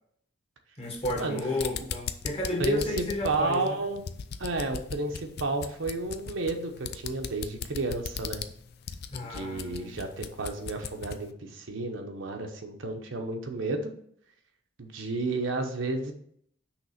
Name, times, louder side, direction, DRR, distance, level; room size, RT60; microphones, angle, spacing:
sound 1, 0.8-11.3, left 6 dB, 55° left, 0.4 m, -38 dB
voice 1, 0.8-3.8 9.1-10.0, left 1 dB, 30° left, 0 dB, 1.5 m, -32 dB
voice 2, 2.6-4.0 4.4-8.4 9.3-13.9 14.8-16.1, right 3 dB, 75° right, 4 dB, 0.9 m, -31 dB
6.0 x 3.3 x 5.7 m, 0.65 s
head